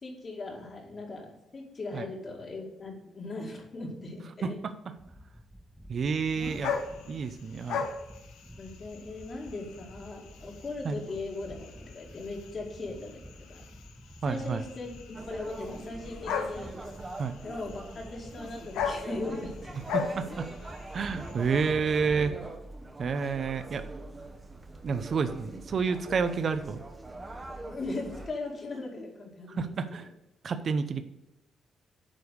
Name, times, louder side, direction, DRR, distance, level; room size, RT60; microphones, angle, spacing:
voice 1, 0.0-4.6 6.3-6.6 8.6-11.7 11.9-13.2 13.5-13.6 14.3-16.8 17.4-19.8 20.3-20.4 27.7-30.0, left 2 dB, 40° left, -1 dB, 2.1 m, -39 dB
voice 2, 4.4-4.9 5.9-6.8 7.1-7.9 10.8-11.0 14.2-14.6 17.2-17.4 19.9-20.5 20.9-22.4 23.0-23.8 24.8-26.8 29.6-30.1 30.4-31.0, right 5 dB, 50° right, 10 dB, 0.7 m, -30 dB
sound 1, 5.0-22.4, equal, 5° right, 1.2 m, -49 dB
sound 2, 6.3-21.5, left 6 dB, 90° left, 1.0 m, -39 dB
sound 3, 15.1-28.3, right 2 dB, 25° right, 1.0 m, -43 dB
9.1 x 3.5 x 6.4 m, 0.92 s
cardioid pair, 90°, 0 cm